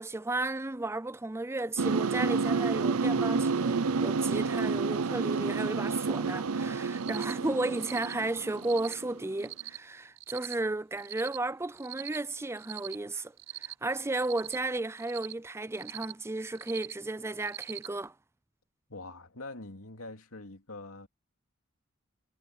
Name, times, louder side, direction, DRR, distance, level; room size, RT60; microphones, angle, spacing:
voice 1, 0.0-13.3 13.6-18.1, right 2 dB, 10° right, 0.5 m, -34 dB
sound 1, 1.8-9.4, right 4 dB, 85° right, 0.6 m, -30 dB
Cricket, 6.9-7.3 7.8-8.1 8.6-8.9 9.4-9.8 10.2-10.5 11.0-11.4 11.8-12.2 12.6-13.0 13.4-13.7 14.2-14.6 15.0-15.3 15.7-16.1 16.5-16.9 17.4-17.9, right 15 dB, 60° right, 6.2 m, -42 dB
voice 2, 18.9-21.1, left 2 dB, 75° left, 2.8 m, -44 dB
head